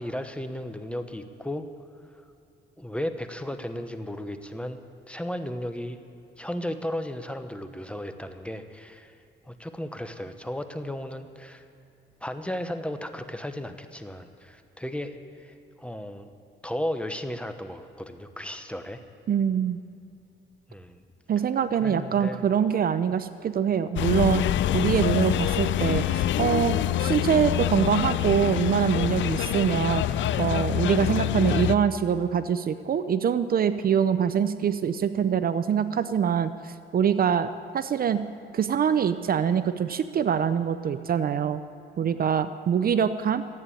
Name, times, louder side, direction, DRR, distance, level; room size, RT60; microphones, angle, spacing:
voice 1, 0.0-1.7 2.1-2.2 2.8-4.8 5.1-6.0 6.4-9.2 9.4-11.7 12.2-16.3 16.6-19.0 20.7-21.0 21.7-22.4, left 1 dB, 5° left, 8 dB, 0.9 m, -35 dB
voice 2, 19.3-19.8 21.3-24.4 24.7-30.0 30.4-38.2 38.5-41.6 42.0-43.4, right 8 dB, 50° right, 12 dB, 0.6 m, -24 dB
sound 1, 24.0-31.8, left 12 dB, 70° left, 0.5 m, -25 dB
14.0 x 9.2 x 8.6 m, 2.7 s
cardioid pair, 90°, 20 cm